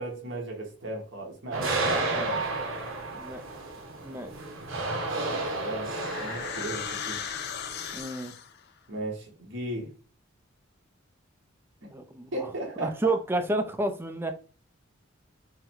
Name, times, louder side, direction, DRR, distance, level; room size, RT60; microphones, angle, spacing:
voice 1, 0.0-2.5 5.6-7.3 8.9-9.9 12.3-13.2, right 2 dB, 65° right, 1 dB, 1.3 m, -36 dB
sound 1, 1.5-8.0, right 2 dB, 85° right, 0.9 m, -32 dB
voice 2, 1.8-2.3 3.1-3.4 4.0-4.3 7.9-8.3 11.9-12.5 12.8-14.3, right 2 dB, 10° right, 7 dB, 0.4 m, -30 dB
sound 2, 5.2-8.6, left 8 dB, 55° left, 0.4 m, -37 dB
3.8 x 2.1 x 4.3 m, 0.38 s
head